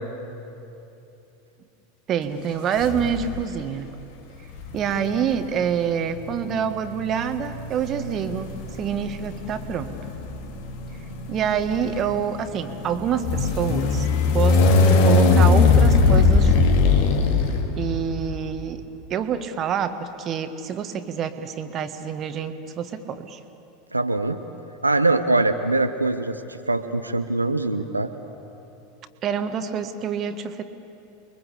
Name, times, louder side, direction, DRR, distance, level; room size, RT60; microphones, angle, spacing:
voice 1, 2.1-3.9 4.7-10.0 11.3-16.7 17.8-18.8 19.1-23.4 29.2-30.6, right 8 dB, 35° right, 9 dB, 1.5 m, -27 dB
sound 1, 2.8-3.5 4.5-18.2, left 4 dB, 50° left, 2.4 m, -21 dB
voice 2, 23.9-24.4 24.8-28.1, right 2 dB, 85° right, 7 dB, 0.9 m, -23 dB
30.0 x 22.5 x 8.4 m, 3.0 s
figure-of-eight pair, 85°, 0 cm